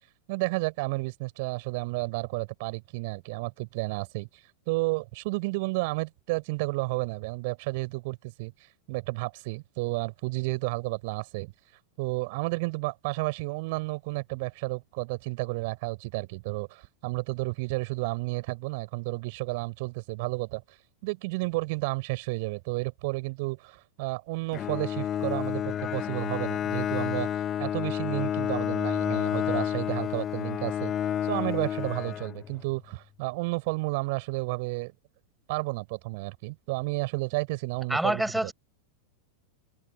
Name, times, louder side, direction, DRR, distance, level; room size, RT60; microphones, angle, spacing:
voice 1, 0.3-11.5 12.0-20.8 21.0-30.9 31.2-34.9 35.5-38.5, right 25 dB, 50° right, 4.6 m, -32 dB
Bowed string instrument, 24.5-32.7, left 10 dB, 25° left, 1.1 m, -30 dB
voice 2, 37.9-38.5, right 1 dB, 5° right, 7.1 m, -26 dB
figure-of-eight pair, 90°, 0 cm